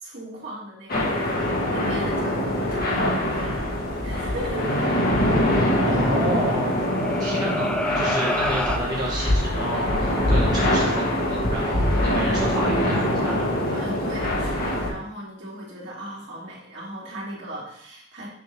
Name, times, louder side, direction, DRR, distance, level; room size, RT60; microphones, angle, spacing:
voice 1, 0.0-3.7 4.0-4.9 5.8-6.0 13.7-18.3, equal, 60° right, -5 dB, 2.4 m, -37 dB
sound 1, 0.9-14.9, left 1 dB, 50° left, 1.5 m, -23 dB
voice 2, 5.8-6.7 7.2-13.8, right 1 dB, 20° right, -6 dB, 1.2 m, -30 dB
sound 2, 6.6-8.8, left 1 dB, 5° left, 0.3 m, -28 dB
7.0 x 5.6 x 3.3 m, 0.73 s
head